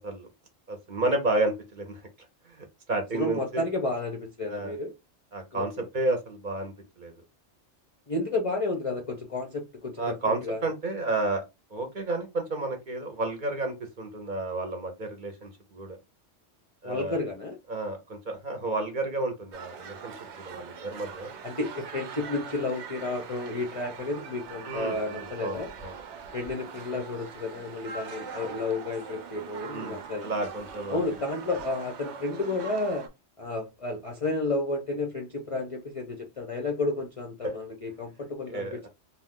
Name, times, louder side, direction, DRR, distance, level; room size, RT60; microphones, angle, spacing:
voice 1, 0.7-2.0 2.5-3.6 4.5-4.8 5.3-7.2 10.0-11.4 11.7-16.0 16.8-17.2 17.7-21.3 24.6-26.0 29.7-31.0 37.4-37.5 38.5-38.9, right 2 dB, 50° right, 0.8 m, -31 dB
voice 2, 3.1-4.9 5.5-5.9 8.1-10.6 16.8-17.6 21.4-25.7 26.3-30.3 30.9-33.1 33.4-38.9, left 2 dB, 45° left, 0.5 m, -31 dB
sound 1, 19.5-33.1, right 6 dB, 80° right, 0.9 m, -42 dB
2.4 x 2.3 x 3.5 m
omnidirectional pair, 1.2 m